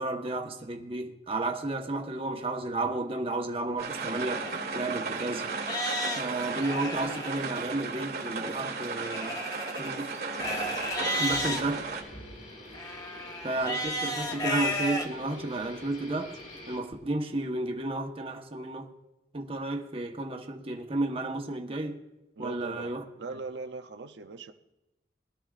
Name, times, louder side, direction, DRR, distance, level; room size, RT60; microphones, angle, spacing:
voice 1, 0.0-4.4 4.7-5.5 6.1-9.4 9.8-10.1 11.2-11.8 13.4-16.3 16.7-18.9 19.3-22.0 22.4-23.0, right 2 dB, 35° right, 1.1 m, -32 dB
sound 1, 3.8-12.0, right 4 dB, 60° right, 1.6 m, -35 dB
Livestock farm animals working animals, 4.4-4.5 5.1-5.2 5.6-7.3 9.0-11.6 12.7-15.1 15.6-15.7 16.3-16.4, left 1 dB, 20° left, 1.1 m, -32 dB
sound 2, 10.4-16.8, left 1 dB, 45° left, 4.5 m, -46 dB
voice 2, 22.4-22.9 23.2-24.5, right 3 dB, 80° right, 0.6 m, -40 dB
21.0 x 12.5 x 2.5 m
head